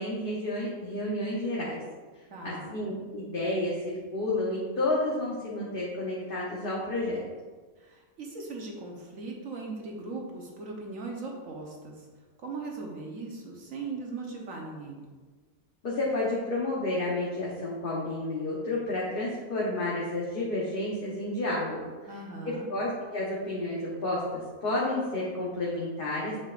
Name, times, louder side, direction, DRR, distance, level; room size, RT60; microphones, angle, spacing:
voice 1, 0.0-1.8 2.4-7.2 15.8-21.8 22.7-26.4, left 2 dB, 40° left, -6 dB, 1.1 m, -31 dB
voice 2, 2.3-2.7 7.8-12.1 12.4-15.0 22.1-22.7, right 3 dB, 60° right, 0 dB, 1.3 m, -39 dB
7.6 x 6.1 x 2.5 m, 1.4 s
omnidirectional pair, 1.6 m